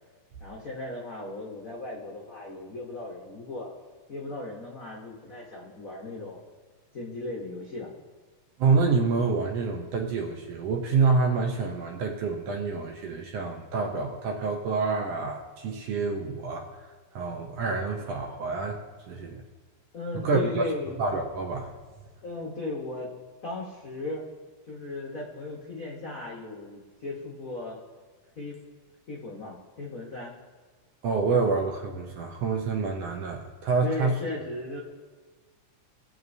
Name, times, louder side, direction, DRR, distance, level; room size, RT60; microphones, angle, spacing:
voice 1, 0.4-3.7 4.1-6.4 6.9-7.9 19.9-21.0 22.2-23.1 23.4-24.2 24.7-27.8 28.4-28.6 29.1-30.3 33.8-34.8, left 2 dB, 75° left, -3 dB, 0.7 m, -36 dB
voice 2, 8.6-16.7 17.1-18.8 19.1-19.4 20.1-20.7 21.0-21.7 31.0-34.1, right 4 dB, 70° right, 2 dB, 1.6 m, -27 dB
19.0 x 7.8 x 2.7 m, 1.5 s
omnidirectional pair, 3.5 m